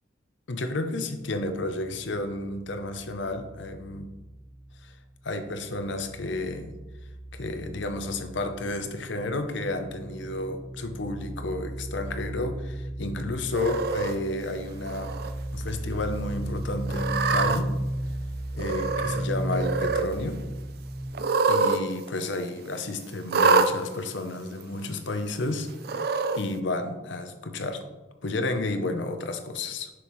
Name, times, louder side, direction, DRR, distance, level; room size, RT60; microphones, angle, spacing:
voice 1, 0.5-4.1 4.8-5.0 5.2-6.7 7.3-15.2 15.5-17.7 18.6-20.4 21.5-26.1 26.3-27.8 28.2-29.9, left 2 dB, 60° left, 7 dB, 0.7 m, -31 dB
sound 1, 1.2-5.0 5.3-21.1, right 1 dB, 5° left, 2.0 m, -36 dB
Cat, 13.5-14.1 14.9-15.3 15.7-15.8 16.9-17.6 18.6-19.2 19.5-20.1 21.1-21.8 22.1-22.2 23.3-23.7 24.6-24.7 25.8-26.4, right 4 dB, 50° right, 0.4 m, -25 dB
6.9 x 6.2 x 3.1 m, 1.1 s
head